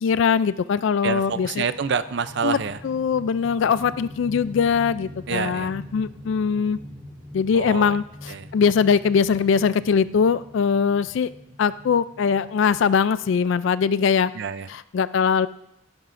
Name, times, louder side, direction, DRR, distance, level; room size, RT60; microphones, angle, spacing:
voice 1, 0.0-1.7 2.4-2.6 2.8-6.8 7.3-11.3 11.6-14.3 14.7-15.5, left 6 dB, 60° left, 15 dB, 0.3 m, -21 dB
voice 2, 1.0-2.8 5.3-5.7 7.5-8.0 8.3-8.5 14.4-14.7, right 5 dB, 55° right, 13 dB, 0.5 m, -27 dB
sound 1, 1.2-13.4, left 1 dB, 15° right, 4.0 m, -43 dB
17.0 x 10.5 x 2.5 m, 0.83 s
head